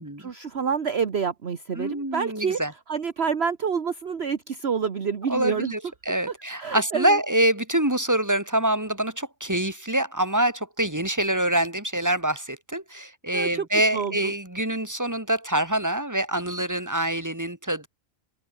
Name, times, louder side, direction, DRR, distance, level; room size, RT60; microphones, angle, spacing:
voice 1, 0.0-2.6 2.9-5.7 6.6-7.2 13.3-13.7 13.9-14.3, right 6 dB, 50° right, 1.5 m, -28 dB
voice 2, 1.8-2.7 5.3-17.9, right 1 dB, 10° right, 3.6 m, -25 dB
omnidirectional pair, 1.4 m